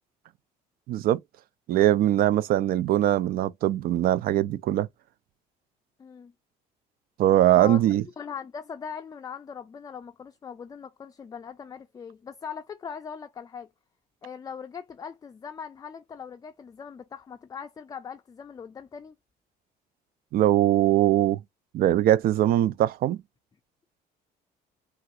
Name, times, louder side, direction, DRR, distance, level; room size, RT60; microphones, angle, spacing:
voice 1, 0.9-1.2 1.7-4.9 7.2-8.0 20.3-21.4 21.7-23.2, right 13 dB, 60° right, 0.4 m, -21 dB
voice 2, 6.0-6.3 7.5-7.8 8.2-13.7 14.2-19.2, left 7 dB, 20° left, 0.3 m, -40 dB
3.4 x 2.4 x 2.7 m
cardioid pair, 110°, 17 cm